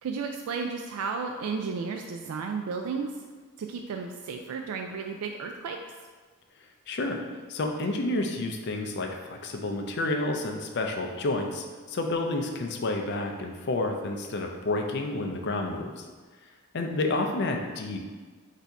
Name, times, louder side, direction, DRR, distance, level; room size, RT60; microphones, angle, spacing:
voice 1, 0.0-3.1 3.6-5.8, right 5 dB, 80° right, 3 dB, 0.3 m, -33 dB
voice 2, 6.9-7.2 7.5-16.0 16.7-18.0, left 2 dB, 50° left, 3 dB, 0.5 m, -30 dB
4.0 x 2.7 x 4.6 m, 1.4 s
head